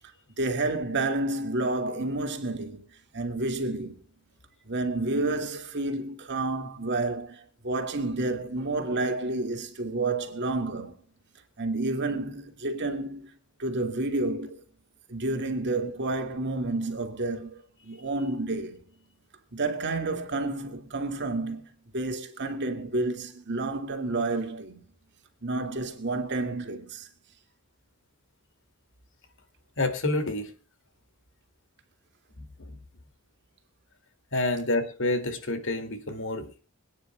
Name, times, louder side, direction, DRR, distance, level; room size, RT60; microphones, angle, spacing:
voice 1, 0.4-4.0 4.7-11.0 11.6-13.3 13.6-14.6 15.1-18.8 19.5-24.8 25.4-27.1, right 2 dB, 55° right, 2.2 m, -30 dB
voice 2, 29.8-30.5 34.3-36.6, left 2 dB, 60° left, 2.4 m, -28 dB
25.5 x 9.7 x 2.3 m
head